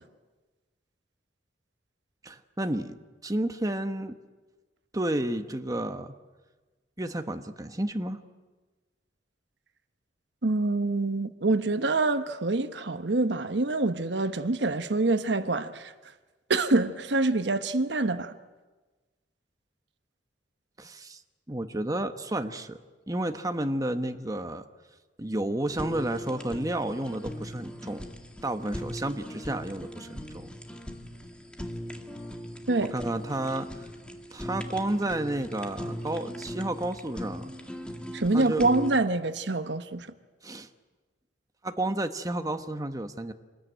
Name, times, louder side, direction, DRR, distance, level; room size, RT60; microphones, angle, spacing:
voice 1, 2.2-4.1 4.9-6.1 7.0-8.2 20.8-21.2 21.5-22.8 23.1-24.6 25.2-28.0 28.4-30.5 32.8-33.7 34.3-37.5 38.3-38.6 40.4-40.7 41.6-43.3, right 1 dB, 20° right, 1.2 m, -31 dB
voice 2, 10.4-15.9 16.5-18.3 32.7-32.9 38.1-40.1, right 2 dB, 65° right, 1.1 m, -26 dB
Fire, 25.7-39.0, equal, 5° left, 2.1 m, -39 dB
27.0 x 20.5 x 9.3 m
head